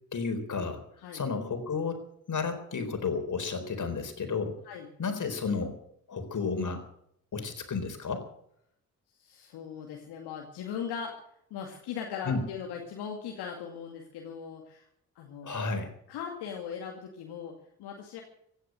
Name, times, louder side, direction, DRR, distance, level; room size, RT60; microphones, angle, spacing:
voice 1, 0.1-0.8 1.1-4.6 5.0-5.8 6.1-6.8 7.3-8.3 12.3-12.4 15.4-15.9, left 4 dB, 45° left, 6 dB, 4.2 m, -32 dB
voice 2, 9.2-11.2 11.5-14.8 15.2-15.7 16.1-18.2, left 7 dB, 65° left, 1 dB, 2.3 m, -39 dB
16.5 x 10.5 x 7.9 m, 0.70 s
figure-of-eight pair, 40°, 42 cm